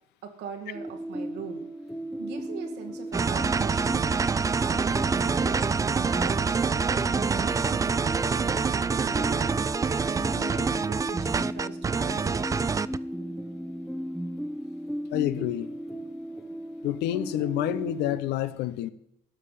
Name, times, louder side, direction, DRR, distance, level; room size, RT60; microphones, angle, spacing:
voice 1, 0.2-1.7 2.2-4.1 4.6-9.6 10.3-12.7, right 6 dB, 85° right, 2.0 m, -41 dB
sound 1, 0.7-18.2, equal, ahead, 0.8 m, -36 dB
sound 2, 3.1-13.0, right 5 dB, 20° right, 0.4 m, -26 dB
voice 2, 15.1-15.7 16.8-18.9, left 13 dB, 85° left, 0.8 m, -28 dB
13.0 x 5.8 x 8.3 m
cardioid pair, 110°, 17 cm